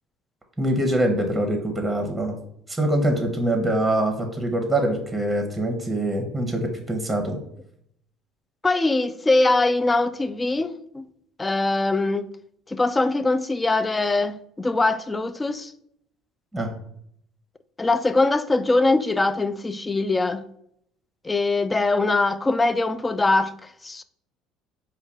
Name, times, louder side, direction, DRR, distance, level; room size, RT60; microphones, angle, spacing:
voice 1, 0.6-2.4 2.7-7.4 16.5-16.7, right 1 dB, 10° right, 0.8 m, -24 dB
voice 2, 8.6-11.0 11.4-12.3 12.7-15.7 17.8-20.4 21.2-24.0, left 2 dB, 20° left, 0.3 m, -22 dB
5.0 x 2.2 x 3.5 m
hypercardioid pair, 70°, 0 cm